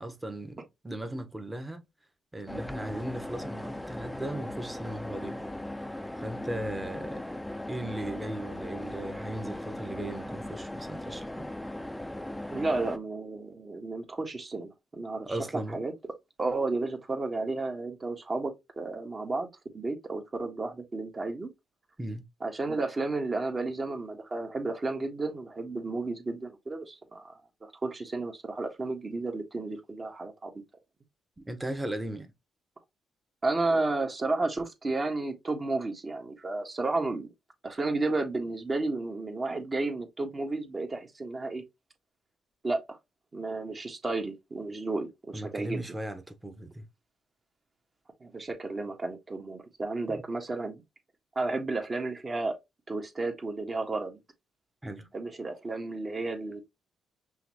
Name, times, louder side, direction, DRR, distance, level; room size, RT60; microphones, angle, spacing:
voice 1, 0.0-1.9 2.3-5.4 6.2-7.2 7.7-11.5 15.2-15.8 22.0-22.2 31.4-32.3 45.3-46.9 50.1-50.2 54.8-55.1, right 1 dB, 15° right, 1.1 m, -37 dB
sound 1, 2.5-13.0, left 1 dB, 10° left, 0.6 m, -38 dB
voice 2, 12.5-15.4 15.7-15.9 16.4-19.5 19.7-21.5 22.4-27.4 27.8-30.5 33.4-37.3 37.6-41.6 42.6-43.0 43.3-45.8 48.2-50.8 51.3-52.6 52.9-54.2 55.1-56.6, right 3 dB, 35° right, 1.5 m, -32 dB
5.7 x 3.1 x 2.9 m
hypercardioid pair, 50°, 0 cm